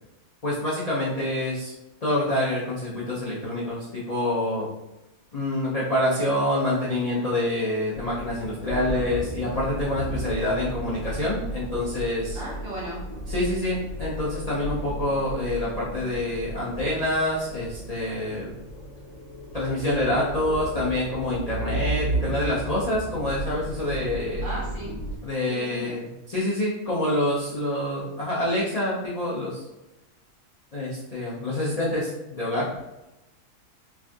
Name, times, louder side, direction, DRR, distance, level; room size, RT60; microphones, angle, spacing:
voice 1, 0.4-1.7 2.0-4.7 5.3-12.4 13.3-18.5 19.5-24.4 25.2-29.6 30.7-32.7, left 1 dB, 60° left, -7 dB, 0.4 m, -26 dB
sound 1, 7.9-25.2, right 1 dB, 80° left, 1.2 m, -34 dB
voice 2, 12.3-13.1 24.4-25.0 25.4-26.0, right 1 dB, 50° right, -5 dB, 0.7 m, -35 dB
3.4 x 2.6 x 2.3 m, 0.96 s
omnidirectional pair, 1.6 m